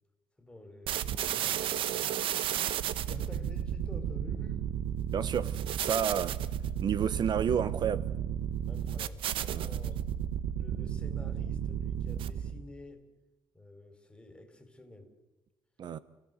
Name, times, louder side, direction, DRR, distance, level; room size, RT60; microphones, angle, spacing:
voice 1, 0.4-2.2 3.1-4.7 8.6-10.3 10.5-13.1 13.5-15.1, left 1 dB, 10° left, 3.6 m, -49 dB
sound 1, 0.9-12.7, right 10 dB, 75° right, 1.0 m, -33 dB
voice 2, 5.1-6.4 6.8-8.1 9.5-9.7 15.8-16.0, right 8 dB, 55° right, 0.8 m, -31 dB
29.5 x 16.5 x 8.0 m
cardioid pair, 110°, 9 cm